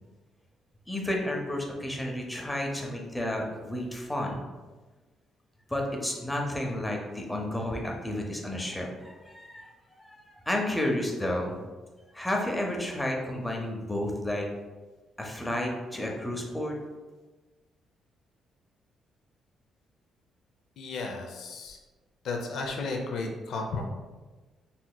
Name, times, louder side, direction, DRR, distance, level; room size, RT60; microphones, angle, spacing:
voice 1, 0.9-4.4 5.7-9.7 10.0-11.6 12.1-14.5 15.2-16.7, left 1 dB, 10° left, 0 dB, 0.7 m, -31 dB
voice 2, 20.8-21.8 22.2-23.9, left 3 dB, 70° left, 1 dB, 0.5 m, -33 dB
4.1 x 2.8 x 2.2 m, 1.3 s
cardioid pair, 90°, 0 cm